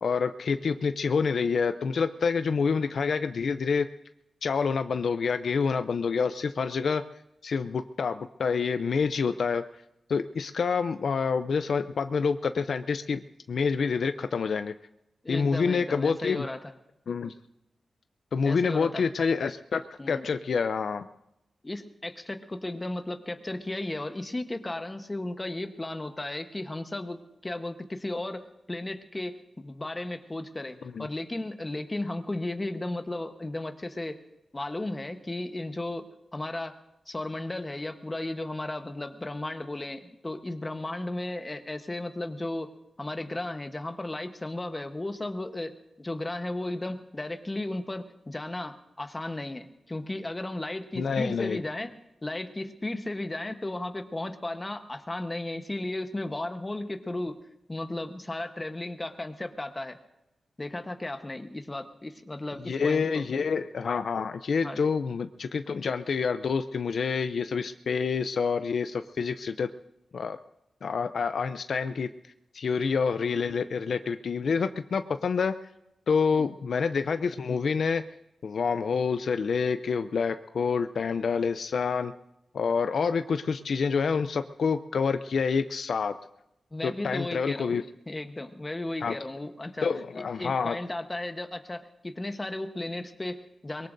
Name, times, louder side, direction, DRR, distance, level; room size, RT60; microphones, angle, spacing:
voice 1, 0.0-3.9 4.4-7.0 7.4-9.6 10.1-13.2 13.5-14.7 15.3-16.5 17.1-17.3 18.3-21.1 30.9-31.1 51.0-51.6 62.6-69.7 70.1-70.4 70.8-72.1 72.5-75.5 76.1-78.0 78.4-82.1 82.5-86.1 86.8-87.8 89.0-89.1 89.8-90.8, left 5 dB, 60° left, 10 dB, 0.4 m, -27 dB
voice 2, 15.2-16.6 18.4-19.0 20.0-20.3 21.6-34.2 34.5-36.1 36.3-36.8 37.1-42.7 43.0-51.9 52.2-57.4 57.7-60.0 60.6-63.2 64.6-64.8 76.3-76.5 86.7-87.8 88.1-89.9 90.1-93.9, left 2 dB, 20° left, 7 dB, 1.0 m, -35 dB
23.0 x 22.5 x 2.6 m, 0.89 s
wide cardioid pair, 150°, 0 cm